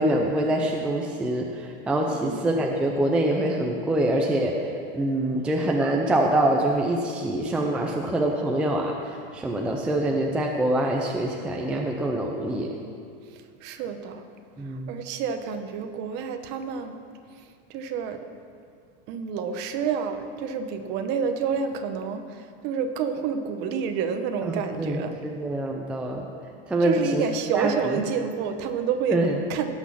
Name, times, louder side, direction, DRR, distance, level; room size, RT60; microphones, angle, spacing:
voice 1, 0.0-12.7 14.6-15.0 24.4-26.3 26.7-27.3 27.5-28.0 29.1-29.4, right 1 dB, 5° right, 0 dB, 0.4 m, -25 dB
voice 2, 2.1-2.4 13.6-14.2 14.9-17.0 17.7-18.2 19.1-25.1 26.8-29.2 29.5-29.7, right 6 dB, 35° right, 7 dB, 0.9 m, -29 dB
17.0 x 6.2 x 7.2 m, 2.3 s
supercardioid pair, 175°, 29 cm